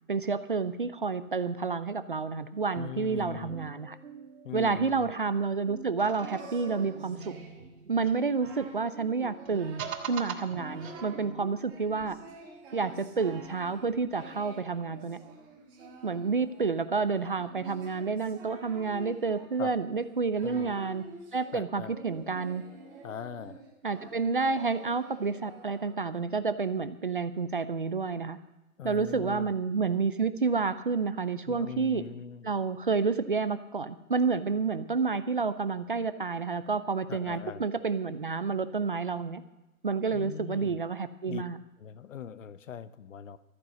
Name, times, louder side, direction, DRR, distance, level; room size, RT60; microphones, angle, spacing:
voice 1, 0.1-4.0 4.5-7.3 7.9-9.8 10.1-12.2 12.7-15.2 16.0-21.0 21.3-22.6 23.8-28.4 28.8-32.0 32.4-39.4 39.8-41.6, right 4 dB, 40° right, 13 dB, 0.4 m, -29 dB
voice 2, 2.7-3.7 4.4-5.1 19.6-19.7 20.4-20.8 21.5-21.9 23.0-23.6 28.8-29.5 31.5-32.5 37.1-37.7 40.1-40.8 41.3-41.4 41.8-43.4, left 8 dB, 65° left, 15 dB, 0.9 m, -40 dB
sound 1, 2.9-11.7, right 5 dB, 90° right, 2.7 m, -50 dB
sound 2, 6.0-8.7 9.4-11.4, right 7 dB, 75° right, 2.0 m, -42 dB
Singing, 6.2-7.7 8.1-8.8 9.2-10.0 10.3-11.2 11.7-26.2, right 3 dB, 10° right, 1.3 m, -49 dB
14.0 x 9.7 x 6.3 m, 1.0 s
hypercardioid pair, 175°, 42 cm